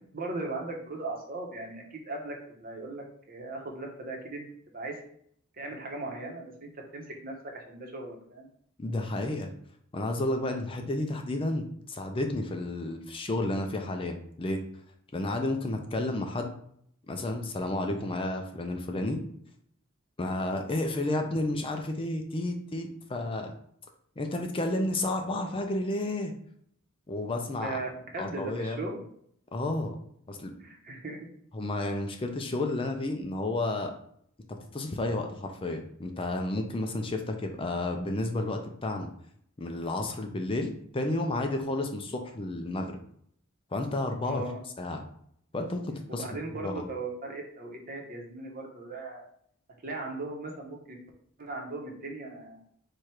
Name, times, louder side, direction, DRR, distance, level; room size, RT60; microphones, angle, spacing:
voice 1, 0.1-5.0 5.6-8.5 27.6-29.0 30.6-31.3 44.2-44.6 46.1-49.3 49.8-51.0 51.4-52.6, right 2 dB, 45° right, 1 dB, 1.0 m, -38 dB
voice 2, 8.8-9.5 9.9-14.6 15.1-16.5 17.1-19.2 20.2-23.5 24.2-26.3 27.1-27.8 28.2-28.9 29.5-30.0 30.3-30.5 31.5-33.9 34.7-39.1 39.6-42.9 43.7-44.4 44.8-45.0 45.5-46.2 46.6-46.9, left 2 dB, 25° left, 4 dB, 0.5 m, -31 dB
4.7 x 2.4 x 4.4 m, 0.66 s
head